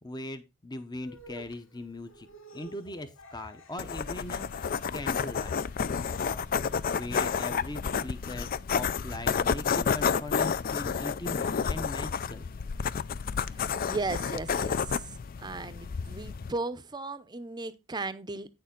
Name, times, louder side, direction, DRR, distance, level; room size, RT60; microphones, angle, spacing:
voice 1, 0.0-2.3 2.5-4.5 4.9-5.5 6.2-6.5 6.9-12.4, left 1 dB, 20° left, 0.7 m, -40 dB
sound 1, 1.0-8.4, equal, 65° left, 2.2 m, -54 dB
sound 2, 3.8-16.5, left 6 dB, 40° left, 0.4 m, -30 dB
voice 2, 13.8-15.0 15.4-18.5, right 3 dB, 20° right, 0.6 m, -36 dB
9.1 x 6.8 x 3.7 m
head